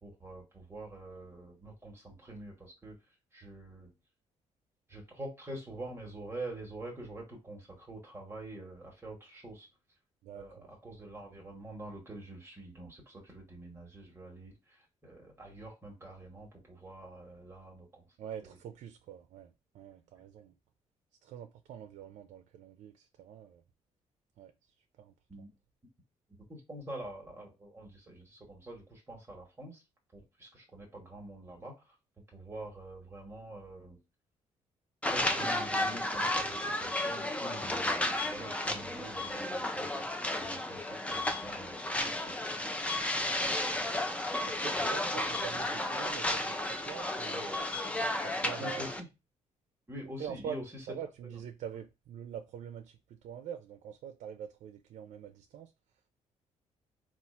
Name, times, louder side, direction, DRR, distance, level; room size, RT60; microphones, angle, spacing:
voice 1, 0.0-3.0 3.3-3.9 4.9-9.7 10.3-18.0 18.4-18.6 25.3-25.5 26.5-29.8 30.1-31.9 32.3-34.0 35.1-40.1 40.4-43.2 44.7-44.9 45.1-45.2 48.6-49.1 49.9-50.9 51.2-51.4, right 1 dB, 20° right, 1.3 m, -46 dB
voice 2, 10.2-10.7 18.2-19.5 19.7-20.5 21.2-23.6 24.4-24.5 25.0-25.1 44.5-47.5 48.2-48.8 50.2-50.6 50.9-53.0 53.2-55.7, right 9 dB, 75° right, 0.5 m, -44 dB
sound 1, 35.0-49.0, left 1 dB, 10° left, 0.5 m, -33 dB
4.2 x 2.4 x 4.2 m
cardioid pair, 120°, 12 cm